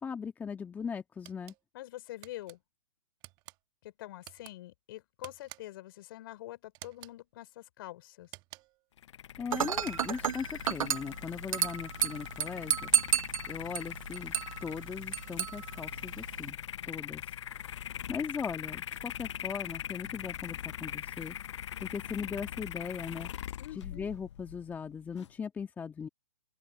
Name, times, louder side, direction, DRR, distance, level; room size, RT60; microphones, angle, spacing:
voice 1, 0.0-1.5 9.4-12.9 13.5-14.3 14.6-16.6 16.8-17.2 18.1-21.4 21.8-23.3 23.8-26.1, left 6 dB, 10° left, 1.5 m, -39 dB
sound 1, 1.2-1.6 2.2-2.6 3.2-3.6 4.2-4.5 5.2-5.8 6.7-7.2 8.2-8.8 9.7-10.4, right 20 dB, 25° right, 1.2 m, -51 dB
voice 2, 1.7-2.6 3.8-8.3 11.4-11.7 23.6-24.1, left 15 dB, 45° left, 4.5 m, -46 dB
sound 2, 9.0-25.3, left 10 dB, 60° left, 0.6 m, -42 dB
Dishes pots and pans / Glass, 9.5-16.5, right 8 dB, 85° right, 0.4 m, -33 dB
open air
hypercardioid pair, 140°, 17 cm